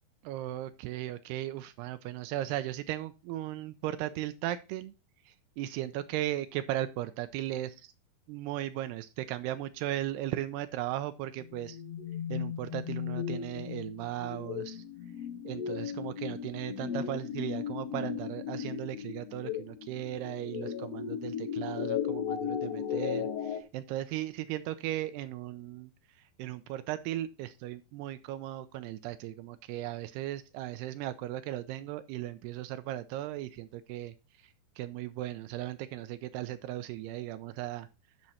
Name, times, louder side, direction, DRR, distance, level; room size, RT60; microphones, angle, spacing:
voice 1, 0.2-4.9 5.3-7.9 8.3-11.8 12.3-14.8 15.5-25.9 26.4-34.1 34.8-37.9, right 14 dB, 85° right, 11 dB, 2.6 m, -37 dB
sound 1, 11.4-23.6, left 8 dB, 85° left, 1.4 m, -36 dB
10.5 x 6.1 x 4.2 m, 0.29 s
omnidirectional pair, 4.7 m